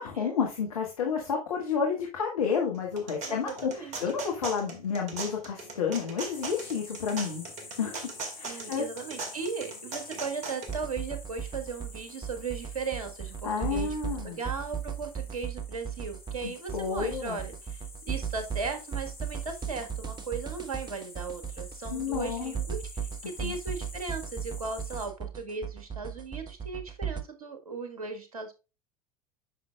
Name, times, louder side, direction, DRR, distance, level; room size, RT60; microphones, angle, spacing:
voice 1, 0.0-7.4 7.8-8.0 8.4-8.8 13.4-14.4 16.4-17.4 21.9-22.5 23.4-23.6, left 6 dB, 70° left, 0 dB, 1.5 m, -30 dB
sound 1, 2.7-10.7, right 3 dB, 40° right, 2.0 m, -39 dB
voice 2, 3.2-4.0 8.4-14.0 14.2-28.5, right 4 dB, 70° right, 7 dB, 1.5 m, -37 dB
sound 2, 6.3-25.1, left 3 dB, 15° left, 2.6 m, -48 dB
sound 3, 10.7-27.2, right 8 dB, 25° right, 0.8 m, -36 dB
9.2 x 5.8 x 2.3 m, 0.29 s
figure-of-eight pair, 75°, 19 cm